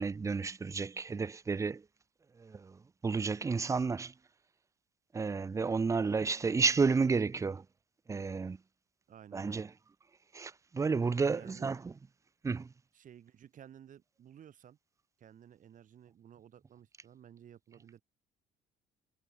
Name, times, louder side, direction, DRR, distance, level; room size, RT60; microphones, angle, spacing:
voice 1, 0.0-1.8 2.4-4.1 5.1-7.6 8.1-8.6 9.3-9.7 10.3-11.8 12.4-12.7, right 4 dB, 20° right, 0.5 m, -31 dB
voice 2, 5.9-6.2 9.1-9.7 11.3-11.7 12.9-14.8 15.2-18.0, right 9 dB, 50° right, 3.0 m, -55 dB
cardioid pair, 110°, 17 cm